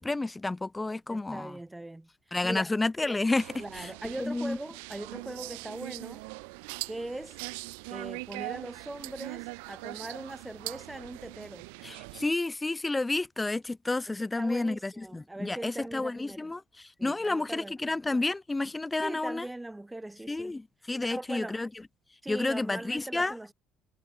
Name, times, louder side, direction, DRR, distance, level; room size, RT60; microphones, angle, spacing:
voice 1, 0.0-1.5 2.3-3.9 4.2-4.6 11.8-19.5 20.3-21.7 22.3-23.3, left 2 dB, 15° left, 1.2 m, -30 dB
voice 2, 1.1-2.7 3.6-6.2 6.9-7.4 7.9-11.7 14.1-16.5 17.0-17.7 19.0-20.6 20.8-21.6 22.2-23.5, right 1 dB, 10° right, 2.1 m, -40 dB
sound 1, 3.3-12.3, right 34 dB, 90° right, 3.1 m, -41 dB
supercardioid pair, 80°, 0 cm